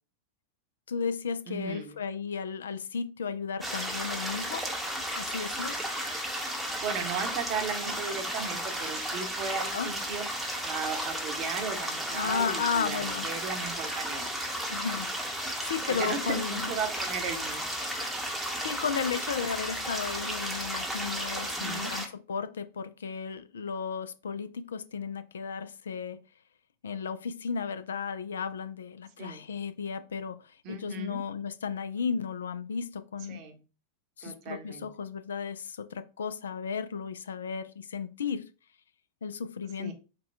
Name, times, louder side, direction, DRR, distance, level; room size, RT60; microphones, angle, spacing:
voice 1, 0.9-4.7 5.2-5.9 9.7-9.9 12.1-13.3 14.7-15.1 15.4-16.7 18.6-26.2 26.8-33.4 34.2-38.5 39.2-39.9, left 6 dB, 65° left, 0.3 m, -34 dB
voice 2, 1.5-2.0 6.8-10.3 10.6-14.3 15.9-18.1 21.4-21.9 29.2-29.5 30.6-31.2 33.3-33.6 34.2-34.9 39.8-39.9, right 5 dB, 40° right, 0.8 m, -36 dB
sound 1, 3.6-22.1, equal, 5° right, 0.8 m, -34 dB
4.1 x 2.2 x 3.4 m
figure-of-eight pair, 90°, 0 cm